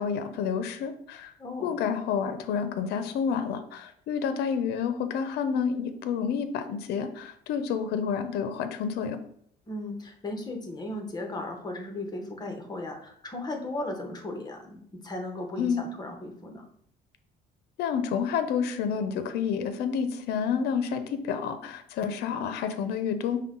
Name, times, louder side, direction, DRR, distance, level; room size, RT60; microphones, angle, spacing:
voice 1, 0.0-1.3 1.6-9.2 15.6-15.8 17.8-23.4, left 7 dB, 75° left, 9 dB, 0.5 m, -29 dB
voice 2, 1.4-1.7 9.7-16.7, left 1 dB, 25° left, 3 dB, 0.9 m, -36 dB
5.4 x 2.1 x 3.7 m, 0.66 s
cardioid pair, 110°, 17 cm